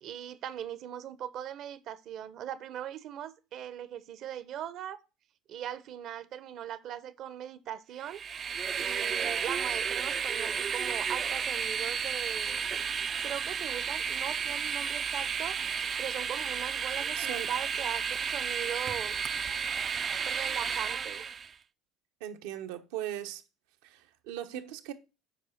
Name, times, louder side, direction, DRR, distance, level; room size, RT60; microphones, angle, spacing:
voice 1, 0.0-5.0 5.5-8.2 8.8-12.6 13.2-15.6 16.0-19.2 20.2-21.3, right 10 dB, 55° right, 0.9 m, -40 dB
Train, 8.0-21.5, right 7 dB, 40° right, 0.5 m, -32 dB
voice 2, 9.0-9.3 17.2-17.5 22.2-23.4 23.8-24.9, right 11 dB, 80° right, 1.1 m, -39 dB
7.3 x 4.9 x 5.9 m
supercardioid pair, 90°, 0 cm